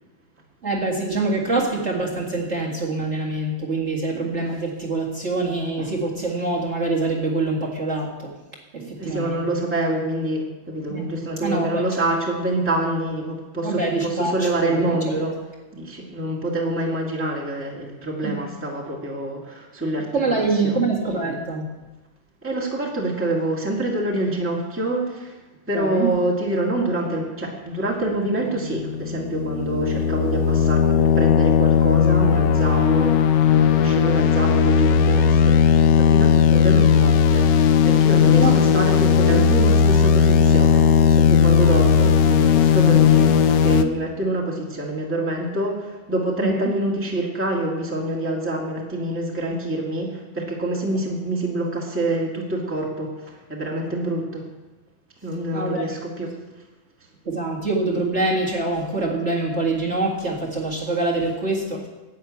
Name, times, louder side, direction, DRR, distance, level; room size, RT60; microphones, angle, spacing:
voice 1, 0.6-8.3 8.7-9.4 10.9-11.1 11.4-11.8 13.6-14.3 14.6-14.9 18.2-18.4 20.1-21.7 25.7-26.1 38.4-38.6 46.4-46.6 55.5-55.9 57.2-61.9, right 3 dB, 35° right, -4 dB, 2.2 m, -25 dB
voice 2, 8.7-15.4 15.7-20.8 22.4-25.4 25.7-54.5 55.2-56.4, right 1 dB, 5° right, -2 dB, 2.0 m, -26 dB
sound 1, 28.7-43.8, left 7 dB, 70° left, 1.3 m, -17 dB
10.5 x 8.9 x 8.6 m, 1.1 s
omnidirectional pair, 2.2 m